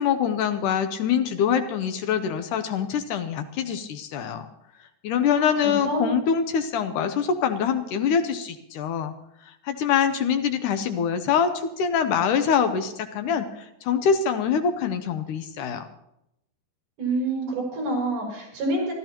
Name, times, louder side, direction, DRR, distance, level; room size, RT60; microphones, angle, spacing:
voice 1, 0.0-4.5 5.0-9.1 9.4-15.9, left 7 dB, 75° left, 8 dB, 1.9 m, -24 dB
voice 2, 5.3-6.1 17.0-18.9, right 2 dB, 70° right, -3 dB, 7.6 m, -27 dB
25.0 x 13.5 x 3.0 m, 0.82 s
omnidirectional pair, 4.4 m